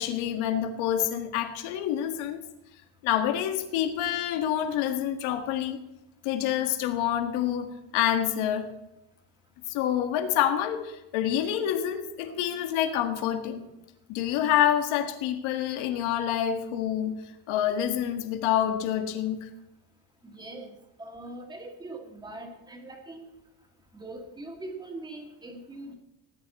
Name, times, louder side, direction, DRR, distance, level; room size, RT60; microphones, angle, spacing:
voice 1, 0.0-2.4 3.0-5.8 6.2-8.7 9.7-13.7 14.1-17.1 17.5-19.5, left 10 dB, 75° left, 7 dB, 1.8 m, -27 dB
voice 2, 20.2-20.7 21.0-23.2 23.9-25.9, right 2 dB, 10° right, 2 dB, 1.8 m, -41 dB
19.0 x 11.0 x 4.2 m, 0.89 s
cardioid pair, 180°, 48 cm